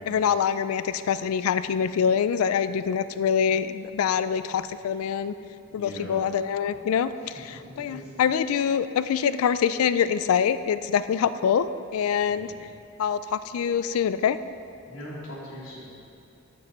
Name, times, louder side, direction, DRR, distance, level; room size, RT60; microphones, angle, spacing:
voice 1, 0.0-5.3 5.7-11.7 11.9-12.5 13.0-14.4, left 7 dB, 85° left, 13 dB, 0.3 m, -25 dB
voice 2, 5.7-6.2 7.6-8.0 12.3-12.6 14.9-15.8, equal, 65° left, -8 dB, 1.9 m, -40 dB
9.0 x 6.9 x 4.3 m, 2.5 s
head